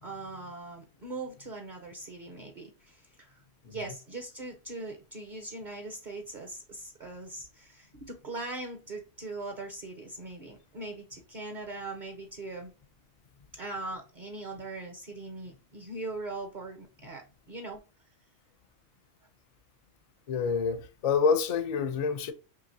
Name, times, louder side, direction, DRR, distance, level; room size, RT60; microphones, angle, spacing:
voice 1, 0.0-3.3 3.7-12.7 13.5-17.8, right 2 dB, 45° right, 0.7 m, -40 dB
voice 2, 20.3-22.3, left 5 dB, 60° left, 0.4 m, -27 dB
4.8 x 2.9 x 2.6 m
omnidirectional pair, 1.3 m